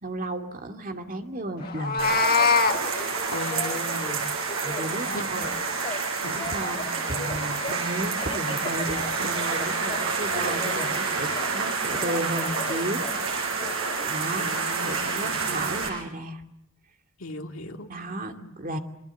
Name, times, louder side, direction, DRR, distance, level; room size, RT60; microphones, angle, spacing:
voice 1, 0.0-2.1 4.1-4.2 4.6-5.5 5.9-13.6 14.1-16.4 17.9-18.8, right 1 dB, 40° right, 5 dB, 2.4 m, -34 dB
Telephone, 1.6-4.1 4.5-6.0 6.3-7.8 8.2-11.6 11.9-14.1, left 3 dB, 25° left, 3.4 m, -38 dB
Meow, 1.7-2.8, left 4 dB, 45° left, 1.6 m, -21 dB
sound 1, 2.0-15.9, right 4 dB, 85° right, 7.4 m, -29 dB
voice 2, 3.3-4.2 5.1-5.2 6.2-6.5 10.6-10.8 14.2-15.4 17.2-17.9 18.4-18.5, left 2 dB, 80° left, 2 dB, 2.4 m, -37 dB
28.5 x 25.5 x 8.3 m, 0.79 s
head